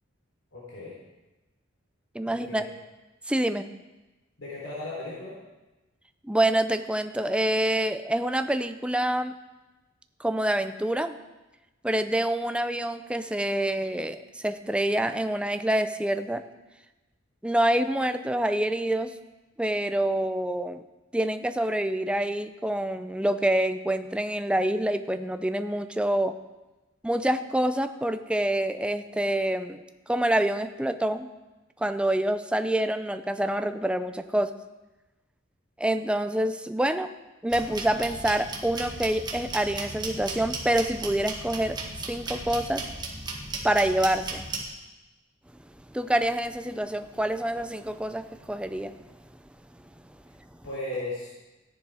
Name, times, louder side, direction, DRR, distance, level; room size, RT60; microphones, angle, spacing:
voice 1, 0.5-0.9 2.2-2.6 4.4-5.4 50.6-51.4, left 2 dB, 70° left, -6 dB, 3.8 m, -36 dB
voice 2, 2.1-2.7 3.2-3.7 6.2-9.4 10.2-11.2 11.8-16.4 17.4-19.2 19.6-20.8 21.1-26.4 27.0-31.3 31.8-34.5 35.8-37.1 37.4-41.8 42.1-42.9 43.6-44.5 45.6-49.4 49.7-50.7, right 1 dB, 5° right, 9 dB, 0.5 m, -27 dB
sound 1, 37.5-44.7, right 3 dB, 20° right, 1.7 m, -36 dB
14.5 x 10.5 x 4.9 m, 1.1 s
head